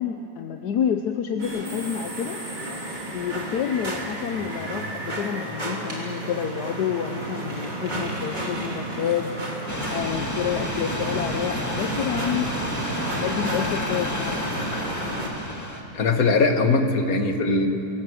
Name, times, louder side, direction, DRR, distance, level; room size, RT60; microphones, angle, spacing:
voice 1, 0.0-2.4 3.1-9.3 9.9-14.6, left 8 dB, 75° left, 6 dB, 1.3 m, -29 dB
Train passing by, 1.4-15.3, right 1 dB, 25° right, 2.1 m, -34 dB
sound 1, 1.4-15.1, right 2 dB, 60° right, 4.3 m, -38 dB
sound 2, 9.7-15.8, left 1 dB, 10° left, 2.1 m, -30 dB
voice 2, 15.9-17.7, left 3 dB, 55° left, 5 dB, 1.9 m, -20 dB
25.5 x 16.5 x 7.8 m, 2.9 s
omnidirectional pair, 1.8 m